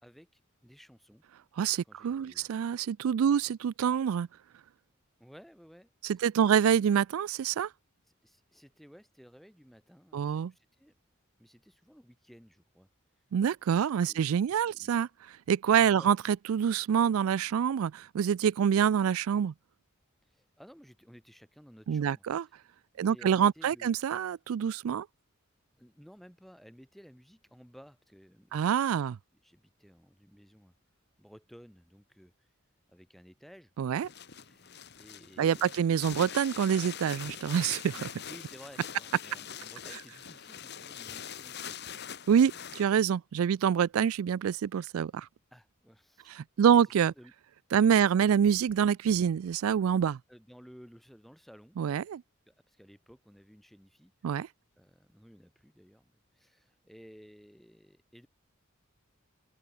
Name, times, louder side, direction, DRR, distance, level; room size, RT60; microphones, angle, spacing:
voice 1, 0.0-1.2 1.8-2.5 3.2-3.4 5.2-5.9 6.2-6.5 8.2-10.9 11.4-12.9 14.1-14.2 14.7-15.0 15.8-16.1 20.3-22.2 22.9-24.0 25.8-28.6 28.9-29.0 29.4-30.7 31.2-32.5 32.9-34.1 34.4-35.8 38.3-42.2 42.5-42.7 45.5-46.7 47.2-47.3 47.8-48.3 50.3-51.8 52.5-54.5 54.8-58.3, equal, ahead, 2.1 m, -56 dB
voice 2, 1.6-4.3 6.0-7.7 10.1-10.5 13.3-15.1 15.5-19.5 21.9-22.4 23.0-25.1 28.5-29.2 33.8-34.1 35.4-38.1 42.3-45.3 46.3-47.1 47.7-50.2 51.8-52.2 54.2-54.5, right 8 dB, 85° right, 0.3 m, -26 dB
sound 1, 34.0-42.9, left 8 dB, 50° left, 2.0 m, -43 dB
open air
head